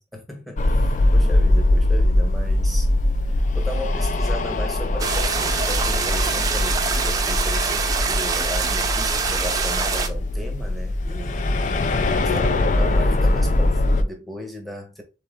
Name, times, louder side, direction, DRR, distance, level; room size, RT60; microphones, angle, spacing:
voice 1, 0.0-2.9 3.2-11.5 12.2-15.0, left 1 dB, ahead, 0.9 m, -36 dB
sound 1, 0.6-14.0, left 1 dB, 40° left, 0.4 m, -21 dB
sound 2, 5.0-10.1, right 5 dB, 20° right, 0.5 m, -24 dB
3.9 x 3.3 x 3.6 m
head